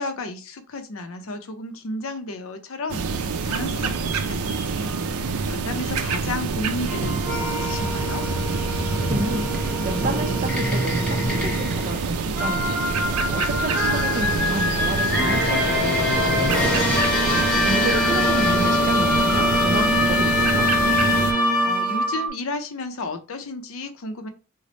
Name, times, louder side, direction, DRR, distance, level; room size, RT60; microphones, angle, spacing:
voice 1, 0.0-4.9 5.5-8.3 21.6-24.3, left 2 dB, 65° left, 0.6 m, -33 dB
sound 1, 2.9-21.3, right 4 dB, 90° right, 0.5 m, -27 dB
sound 2, 6.9-22.3, left 1 dB, 5° left, 0.8 m, -23 dB
voice 2, 9.1-20.7, right 2 dB, 40° right, 0.5 m, -31 dB
3.3 x 2.1 x 3.8 m
head